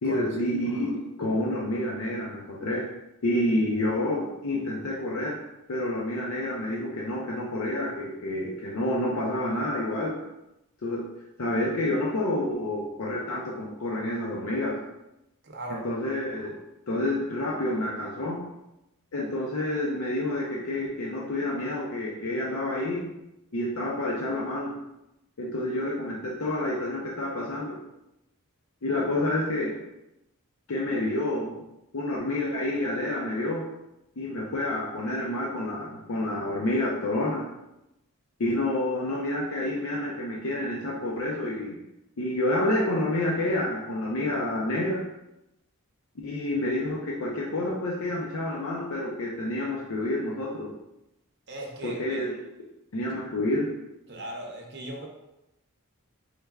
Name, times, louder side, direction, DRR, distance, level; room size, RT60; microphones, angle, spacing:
voice 1, 0.0-2.8 3.2-5.4 5.7-10.2 10.8-11.0 11.4-14.8 15.7-16.6 16.9-18.5 19.1-23.1 23.5-24.7 25.4-27.8 28.8-29.8 30.7-31.6 31.9-33.6 34.2-37.4 38.4-41.8 42.2-45.1 46.2-50.7 51.8-52.3 52.9-53.7, left 1 dB, 70° left, -3 dB, 0.6 m, -28 dB
voice 2, 15.4-15.8 51.5-52.2 54.1-55.1, right 1 dB, 50° right, 0 dB, 0.7 m, -37 dB
4.7 x 3.2 x 2.3 m, 0.90 s
head